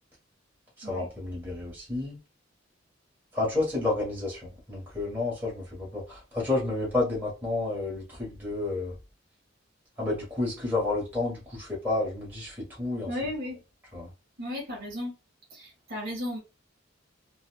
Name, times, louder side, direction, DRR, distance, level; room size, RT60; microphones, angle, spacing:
voice 1, 0.8-2.2 3.3-4.4 4.7-8.9 10.0-13.1 13.9-14.1, left 2 dB, 10° right, 1.5 m, -30 dB
voice 2, 13.1-13.6 14.4-15.1 15.5-16.4, left 1 dB, 50° right, 1.9 m, -34 dB
4.1 x 2.4 x 2.4 m
head